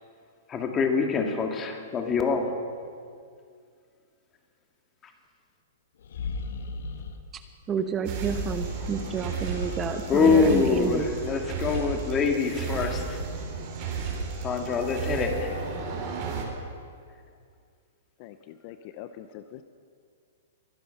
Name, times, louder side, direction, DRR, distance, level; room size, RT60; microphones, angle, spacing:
voice 1, 0.5-2.7 10.1-13.0 14.4-15.6, left 5 dB, 20° left, 4 dB, 1.8 m, -25 dB
sound 1, 6.0-7.2 8.1-10.7, left 4 dB, 75° left, 1.4 m, -39 dB
voice 2, 7.7-11.1, right 6 dB, 20° right, 8 dB, 0.8 m, -30 dB
sound 2, 8.0-16.4, right 5 dB, 45° right, 3.7 m, -33 dB
voice 3, 18.6-19.6, left 11 dB, 45° left, 10 dB, 0.6 m, -43 dB
22.5 x 9.6 x 5.7 m, 2.2 s
hypercardioid pair, 135°, 0 cm